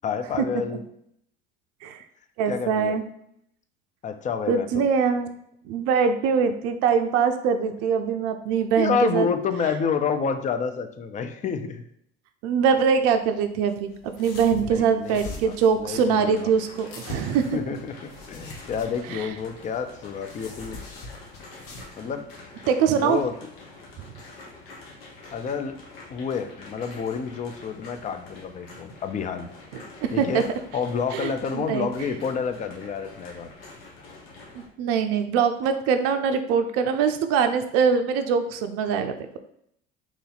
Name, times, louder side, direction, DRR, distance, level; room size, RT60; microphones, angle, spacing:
voice 1, 0.0-0.8 2.5-3.0 4.0-4.9 8.8-11.8 14.6-16.5 17.5-20.8 22.0-22.3 22.9-23.3 25.3-25.8 26.1-29.5 30.1-30.4 30.7-33.5, left 6 dB, 25° left, 8 dB, 0.4 m, -29 dB
voice 2, 2.4-3.0 4.5-5.4 5.7-9.3 12.4-17.6 19.1-19.3 22.7-23.2 29.7-30.4 31.1-32.1 34.8-39.1, right 6 dB, 55° right, 7 dB, 0.5 m, -23 dB
sound 1, 12.9-21.9, left 3 dB, 50° left, 1.0 m, -42 dB
sound 2, 15.9-34.7, left 3 dB, 75° left, 1.0 m, -46 dB
3.0 x 2.7 x 3.9 m, 0.71 s
hypercardioid pair, 70°, 30 cm